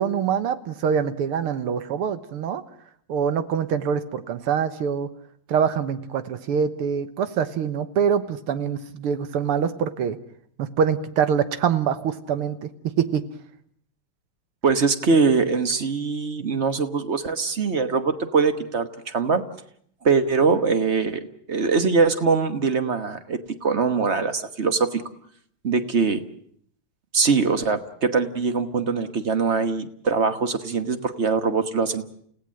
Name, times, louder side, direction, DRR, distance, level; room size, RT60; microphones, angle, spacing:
voice 1, 0.0-2.6 3.1-5.1 5.5-10.2 10.6-12.7 13.0-13.2, right 7 dB, 90° right, 12 dB, 2.1 m, -24 dB
voice 2, 14.6-19.4 20.0-25.0 25.6-26.2 27.1-32.0, right 4 dB, 40° right, 10 dB, 1.2 m, -22 dB
29.5 x 16.5 x 7.6 m, 0.64 s
omnidirectional pair, 2.4 m